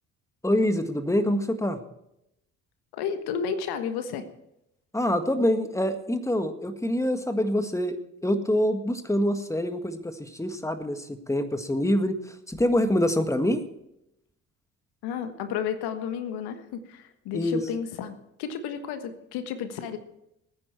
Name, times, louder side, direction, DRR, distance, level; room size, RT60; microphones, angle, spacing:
voice 1, 0.4-1.8 4.9-13.6 17.3-17.6, left 1 dB, 5° left, 8 dB, 1.7 m, -25 dB
voice 2, 2.9-4.3 15.0-20.0, left 7 dB, 65° left, 9 dB, 1.5 m, -32 dB
20.5 x 9.8 x 4.6 m, 0.83 s
hypercardioid pair, 50°, 41 cm